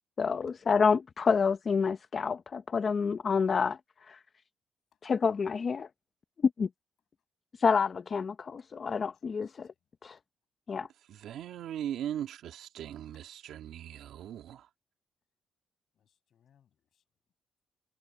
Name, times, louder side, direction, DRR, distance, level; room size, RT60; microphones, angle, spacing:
voice 1, 0.2-3.8 4.1-4.2 5.0-5.9 6.6-6.7 7.6-9.7 10.0-10.2 10.7-10.9, left 5 dB, 40° left, 0.7 m, -28 dB
voice 2, 8.9-9.8 13.1-13.2 15.9-17.0, left 9 dB, 60° left, 6.7 m, -70 dB
voice 3, 11.1-14.7, right 10 dB, 80° right, 2.2 m, -39 dB
cardioid pair, 115°, 0 cm